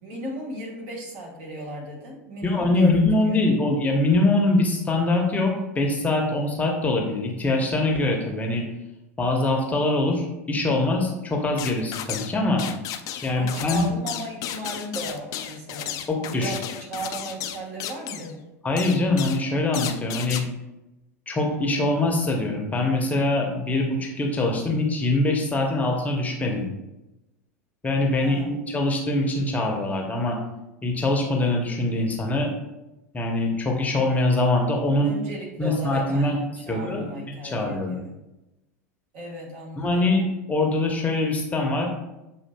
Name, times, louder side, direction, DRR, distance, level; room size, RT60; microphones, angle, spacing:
voice 1, 0.0-3.0 3.3-3.4 13.4-16.0 16.3-18.5 28.2-28.7 35.0-38.2 39.1-40.1, right 1 dB, 55° right, -1 dB, 1.3 m, -36 dB
voice 2, 2.4-8.6 9.2-12.6 13.2-13.8 16.1-16.5 18.6-20.4 21.3-26.7 27.8-30.4 30.8-32.5 33.1-35.1 35.6-36.4 36.7-37.1 37.4-38.0 39.8-40.2 40.5-41.9, left 2 dB, 20° left, 1 dB, 0.7 m, -23 dB
sound 1, 11.6-12.3 12.6-18.3 18.8-19.4 19.7-20.4, left 11 dB, 45° left, 0.3 m, -33 dB
7.0 x 2.6 x 2.2 m, 0.96 s
figure-of-eight pair, 80°, 9 cm